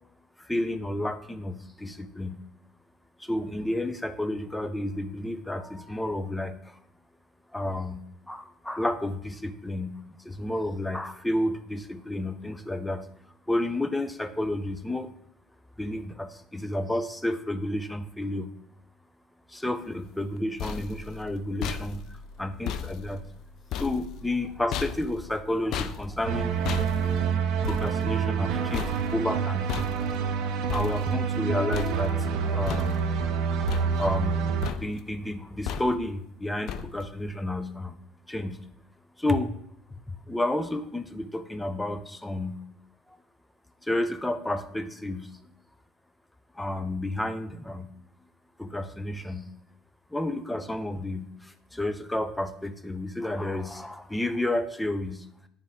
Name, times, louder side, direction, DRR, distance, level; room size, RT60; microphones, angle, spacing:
voice 1, 0.4-2.4 3.2-6.8 7.5-13.1 13.5-15.1 15.8-18.5 19.5-23.2 23.7-26.5 27.7-29.7 30.7-33.2 34.0-38.0 38.3-38.7 39.2-39.5 39.9-42.6 43.8-45.3 46.5-47.9 48.6-49.5 50.1-55.3, left 1 dB, 5° left, 10 dB, 0.5 m, -31 dB
sound 1, 20.2-31.5 31.7-32.3 32.7-33.3 33.7-34.4 34.6-35.1 35.7-36.2 36.7-37.2, left 8 dB, 65° left, 0.4 m, -37 dB
sound 2, 26.2-34.7, right 6 dB, 70° right, 0.6 m, -27 dB
9.7 x 3.5 x 3.6 m, 0.75 s
cardioid pair, 110°, 0 cm